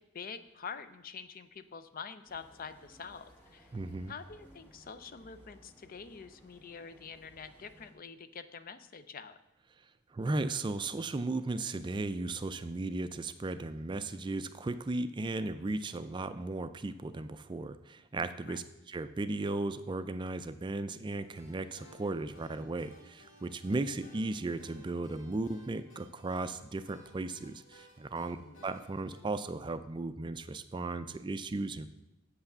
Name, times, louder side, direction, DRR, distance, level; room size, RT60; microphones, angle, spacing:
voice 1, 0.0-3.7 4.1-9.4 18.5-18.6 28.3-28.7, left 5 dB, 45° left, 12 dB, 0.5 m, -46 dB
sound 1, 2.3-7.9, equal, 10° left, 2.0 m, -60 dB
voice 2, 3.7-4.1 10.1-28.4 28.6-31.9, right 2 dB, 25° right, 11 dB, 0.4 m, -36 dB
sound 2, 21.2-29.2, equal, 70° left, 1.8 m, -59 dB
8.0 x 5.7 x 6.7 m, 0.90 s
head